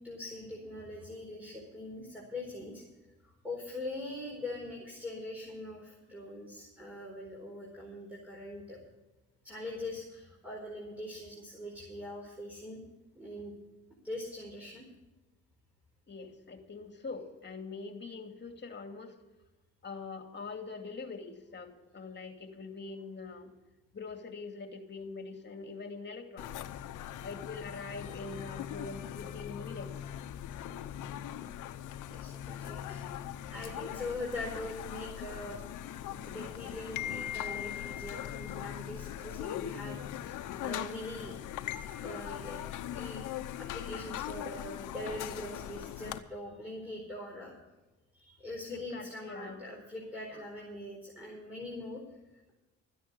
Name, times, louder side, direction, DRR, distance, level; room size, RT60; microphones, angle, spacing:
voice 1, 0.0-2.8 3.2-8.8 9.4-12.8 13.1-13.5 14.0-14.8 30.5-30.6 32.1-35.7 36.1-41.3 42.0-42.6 42.9-43.3 43.6-47.5 48.1-52.0, left 1 dB, 5° right, -3 dB, 4.3 m, -42 dB
voice 2, 16.1-19.2 19.8-23.5 23.9-26.6 27.2-29.9 44.8-44.9 48.7-49.6 50.3-50.4, left 4 dB, 35° left, 5 dB, 2.5 m, -43 dB
sound 1, 26.4-46.2, left 11 dB, 85° left, 0.9 m, -40 dB
14.0 x 10.0 x 6.7 m, 1.1 s
cardioid pair, 90°, 30 cm